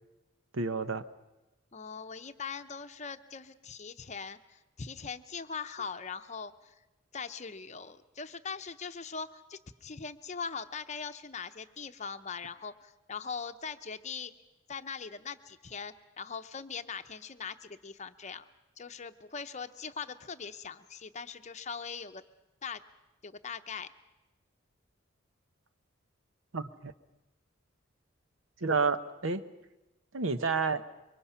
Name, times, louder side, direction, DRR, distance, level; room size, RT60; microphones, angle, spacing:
voice 1, 0.5-1.0 26.5-26.9 28.6-29.4 30.1-30.8, right 4 dB, 75° right, 11 dB, 0.9 m, -30 dB
voice 2, 1.7-6.7 7.1-14.3 14.7-18.4 18.8-22.2 22.6-22.8 23.2-23.9, left 5 dB, 35° left, 9 dB, 0.7 m, -41 dB
25.5 x 23.5 x 5.7 m, 1.0 s
head